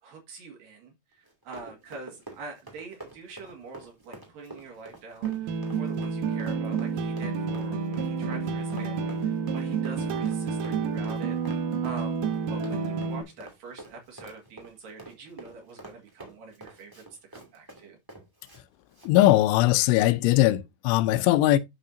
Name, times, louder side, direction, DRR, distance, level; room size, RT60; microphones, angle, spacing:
voice 1, 0.0-18.0, right 4 dB, 55° right, 3.0 m, -45 dB
Run, 1.2-18.6 18.9-19.1, right 1 dB, 15° right, 0.6 m, -47 dB
sound 1, 5.2-13.2, right 6 dB, 80° right, 2.0 m, -29 dB
voice 2, 19.0-21.6, left 15 dB, 85° left, 3.0 m, -20 dB
9.2 x 6.5 x 2.7 m
omnidirectional pair, 5.4 m